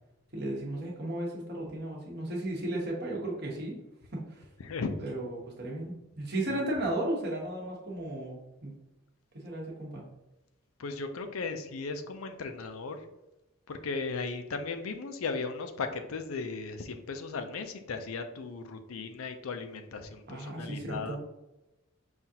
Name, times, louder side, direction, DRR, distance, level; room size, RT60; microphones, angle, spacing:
voice 1, 0.3-3.8 4.1-4.4 5.0-8.8 9.3-10.0 20.3-21.2, right 1 dB, 50° right, -3 dB, 1.1 m, -35 dB
voice 2, 4.6-4.9 6.5-6.6 10.8-13.1 13.7-21.2, left 4 dB, 80° left, 7 dB, 0.5 m, -36 dB
5.6 x 2.4 x 2.8 m, 0.96 s
head